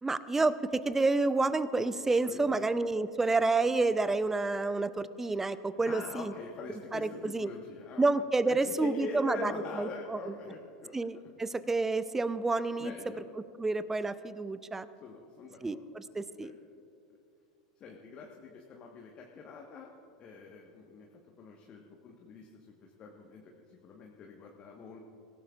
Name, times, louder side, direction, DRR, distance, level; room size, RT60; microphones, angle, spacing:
voice 1, 0.0-6.3 6.9-7.5 8.0-10.3 10.9-12.9 13.6-14.9 15.6-16.5, right 3 dB, 10° right, 15 dB, 0.6 m, -29 dB
voice 2, 2.2-2.6 5.9-8.1 8.5-10.9 12.8-13.3 15.0-15.8 16.4-16.5 17.1-17.2 17.8-21.1 21.4-23.4 23.7-25.0, left 4 dB, 35° left, 0 dB, 1.5 m, -44 dB
26.0 x 16.5 x 2.5 m, 2.6 s
figure-of-eight pair, 85°, 3 cm